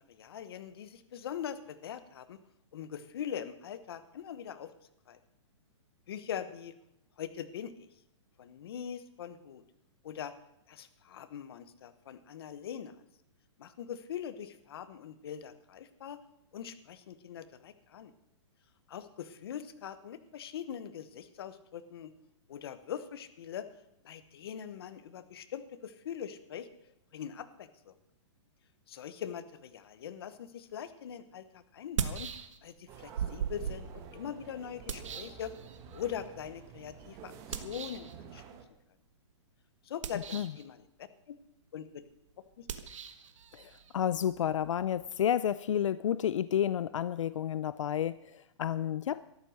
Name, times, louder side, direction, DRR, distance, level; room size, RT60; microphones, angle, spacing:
voice 1, 0.0-2.4 2.7-4.7 5.1-5.2 6.1-6.7 7.2-7.9 8.4-9.6 10.0-10.3 10.7-12.9 13.6-16.2 16.5-18.1 18.9-22.1 22.5-23.7 24.0-26.7 27.1-27.9 28.9-32.3 32.6-35.5 35.9-38.4 39.8-41.4 41.7-42.0 42.6-42.7, left 9 dB, 55° left, 12 dB, 1.2 m, -42 dB
sound 1, 30.8-30.9 31.8-32.8 33.1-36.0 37.5-38.1 39.9-40.7 42.6-45.2, right 7 dB, 85° right, 1.5 m, -39 dB
sound 2, 32.9-38.6, right 7 dB, 20° right, 1.2 m, -50 dB
voice 2, 43.5-49.2, left 10 dB, 90° left, 16 dB, 0.5 m, -31 dB
13.0 x 11.0 x 6.4 m, 0.81 s
hypercardioid pair, 170°, 16 cm